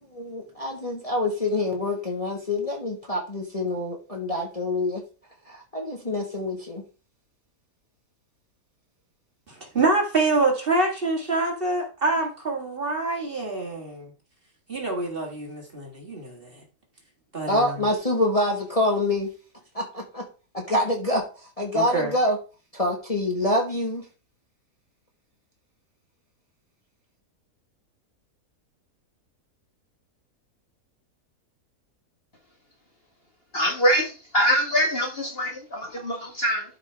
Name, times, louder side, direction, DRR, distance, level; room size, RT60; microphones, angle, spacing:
voice 1, 0.1-5.0 5.5-6.8 17.5-19.3 19.7-20.3 20.5-21.2 21.6-22.4 22.7-24.0, left 1 dB, 25° left, 1.5 m, -26 dB
voice 2, 9.5-14.1 14.7-16.6 17.3-17.8 21.7-22.1, right 2 dB, 35° right, 2.0 m, -26 dB
voice 3, 33.5-36.6, equal, 40° left, 1.6 m, -24 dB
12.0 x 5.0 x 3.4 m
omnidirectional pair, 1.7 m